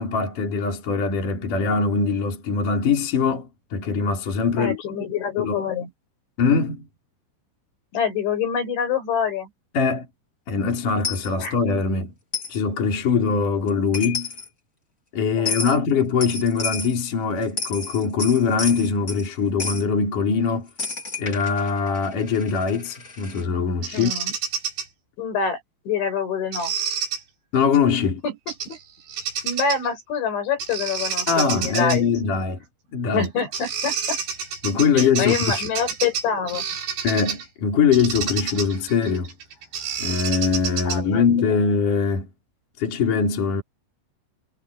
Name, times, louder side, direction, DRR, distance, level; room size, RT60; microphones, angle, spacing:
voice 1, 0.0-4.8 5.4-5.6 6.4-6.9 9.7-10.1 10.5-12.1 12.5-14.3 15.1-20.7 21.2-24.1 27.5-28.2 31.3-32.6 32.9-33.3 34.6-35.7 37.0-39.3 40.0-42.2 42.8-43.6, left 5 dB, 45° left, 5.3 m, -22 dB
voice 2, 4.6-5.9 7.9-9.5 11.4-11.5 15.4-15.8 23.9-24.3 25.2-26.7 28.2-28.4 28.7-28.8 29.4-32.0 33.1-34.2 34.9-36.7 40.8-41.3, left 6 dB, 70° left, 8.1 m, -26 dB
Coin (dropping), 11.0-11.3 12.3-12.6 13.7-13.8 13.9-14.5 15.4-15.8 16.2-17.0 17.4-19.3 19.6-19.8 20.8-23.4, left 4 dB, 20° left, 3.8 m, -31 dB
Bird vocalization bird call bird song, 23.8-24.8 26.5-27.2 28.5-28.8 29.1-29.9 30.6-32.0 33.2-33.3 33.5-37.5 37.9-41.2, right 7 dB, 65° right, 6.8 m, -29 dB
omnidirectional pair, 5.6 m